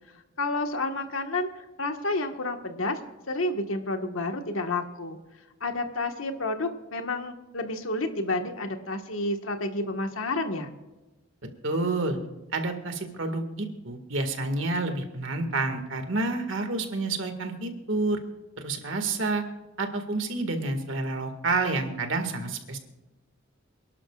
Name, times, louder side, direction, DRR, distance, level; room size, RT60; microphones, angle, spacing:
voice 1, 0.4-1.5 1.8-3.0 3.3-5.2 5.6-10.7, left 2 dB, 85° left, 5 dB, 1.6 m, -30 dB
voice 2, 11.6-12.2 12.5-18.2 18.6-19.4 19.8-22.8, right 3 dB, 65° right, 6 dB, 2.0 m, -29 dB
28.0 x 12.0 x 2.5 m, 1.1 s
head